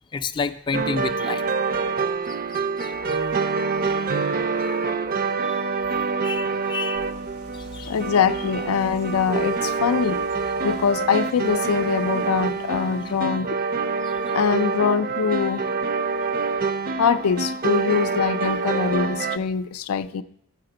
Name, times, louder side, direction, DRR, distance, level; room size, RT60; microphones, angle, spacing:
voice 1, 0.1-1.5 2.3-3.2 3.7-3.8 4.6-4.8 5.4-5.6 6.0-7.1 7.5-7.9 14.0-14.1, left 4 dB, 20° left, 7 dB, 0.4 m, -31 dB
sound 1, 0.7-19.4, right 4 dB, 45° right, 0.5 m, -26 dB
sound 2, 6.9-13.2, right 1 dB, 80° right, 0.8 m, -47 dB
voice 2, 7.8-10.2 10.6-13.6 14.3-15.6 17.0-20.2, left 6 dB, 85° left, 11 dB, 0.4 m, -23 dB
7.7 x 5.8 x 7.7 m, 0.71 s
head